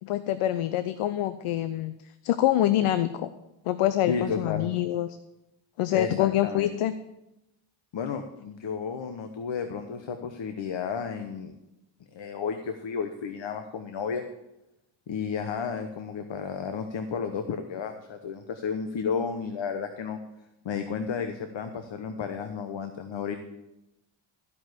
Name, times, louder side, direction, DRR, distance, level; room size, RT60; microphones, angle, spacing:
voice 1, 0.0-1.9 2.2-3.3 3.7-5.1 5.8-6.9, left 13 dB, 85° left, 12 dB, 0.7 m, -25 dB
voice 2, 4.1-4.7 5.9-6.7 7.9-11.5 12.1-14.2 15.1-20.2 20.6-23.4, left 6 dB, 60° left, 7 dB, 1.1 m, -32 dB
14.5 x 5.5 x 8.1 m, 0.92 s
cardioid pair, 60°, 49 cm